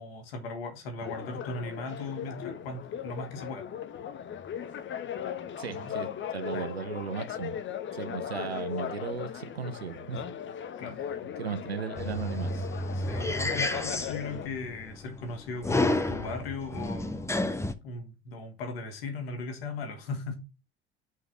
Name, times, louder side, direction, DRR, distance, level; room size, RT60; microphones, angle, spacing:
voice 1, 0.0-3.7 5.7-5.9 6.5-6.7 10.8-11.0 12.5-12.7 12.9-17.5 17.8-20.4, left 3 dB, 75° left, 2.3 m, -38 dB
sound 1, 1.0-14.5, left 9 dB, 40° left, 1.1 m, -38 dB
voice 2, 5.6-7.5 7.9-10.2 10.8-10.9 11.4-12.6, right 6 dB, 90° right, 0.7 m, -36 dB
sound 2, 12.0-17.7, left 2 dB, 10° left, 1.2 m, -31 dB
5.8 x 5.5 x 6.0 m
figure-of-eight pair, 60°, 30 cm